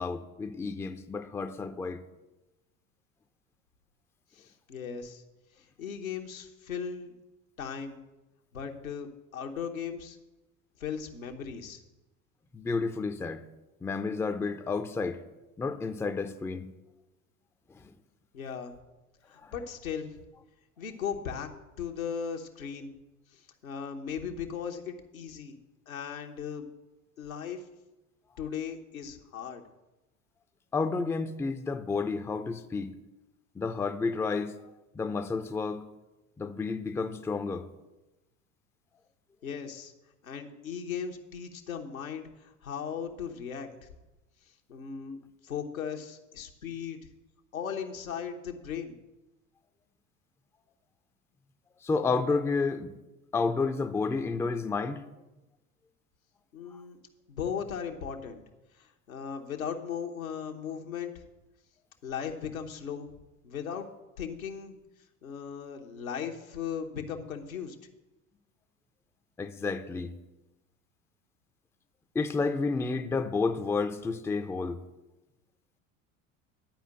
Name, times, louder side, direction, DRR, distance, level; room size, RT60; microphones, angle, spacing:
voice 1, 0.0-2.0 12.5-13.4 13.8-15.2 15.6-16.7 30.7-32.9 33.6-34.5 35.0-35.8 36.4-37.6 51.8-52.9 53.3-55.0 69.4-70.1 72.1-74.8, left 4 dB, 5° left, 0.5 m, -30 dB
voice 2, 4.3-5.2 5.6-7.1 7.6-8.0 8.5-10.2 10.8-11.8 18.3-18.7 19.3-20.1 20.8-21.5 21.8-22.9 23.3-25.6 25.9-26.7 27.2-27.6 28.4-29.6 39.4-39.9 40.2-43.7 44.7-47.0 47.5-48.9 56.5-57.0 57.3-58.4 58.8-61.1 62.0-63.1 63.4-63.9 64.2-64.7 65.2-67.8, left 7 dB, 80° left, 1.1 m, -37 dB
10.5 x 5.0 x 7.6 m
figure-of-eight pair, 70°, 41 cm